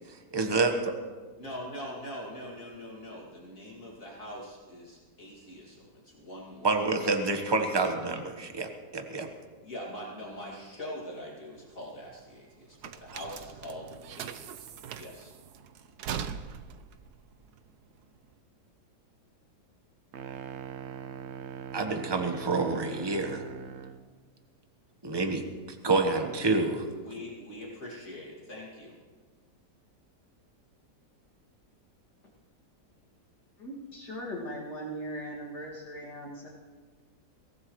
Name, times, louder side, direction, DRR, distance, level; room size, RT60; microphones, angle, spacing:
voice 1, 0.3-0.9 6.6-9.3 21.7-23.4 25.0-25.4 25.7-26.9, right 3 dB, 15° right, 5 dB, 1.1 m, -28 dB
voice 2, 1.4-6.8 9.6-15.3 27.0-29.0, left 1 dB, 50° left, -4 dB, 2.9 m, -43 dB
sound 1, 11.6-18.3, right 8 dB, 75° right, 1.3 m, -41 dB
sound 2, 20.1-24.1, right 7 dB, 55° right, 0.8 m, -41 dB
voice 3, 33.6-36.5, equal, 70° left, -5 dB, 3.0 m, -39 dB
23.0 x 17.5 x 3.2 m, 1.4 s
omnidirectional pair, 1.8 m